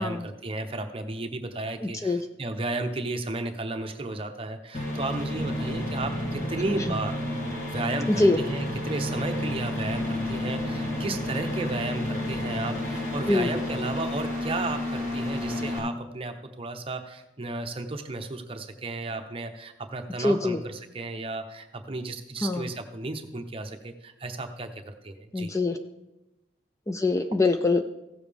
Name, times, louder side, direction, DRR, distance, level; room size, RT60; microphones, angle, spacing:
voice 1, 0.0-7.2 7.4-25.5, right 2 dB, 30° right, 6 dB, 0.8 m, -34 dB
voice 2, 1.8-2.2 8.2-8.4 13.3-13.5 20.2-20.6 22.4-22.7 25.3-25.8 26.9-27.8, left 2 dB, 15° left, 7 dB, 0.4 m, -24 dB
sound 1, 4.7-15.8, left 1 dB, 40° left, 2.0 m, -31 dB
15.5 x 7.2 x 3.4 m, 0.96 s
head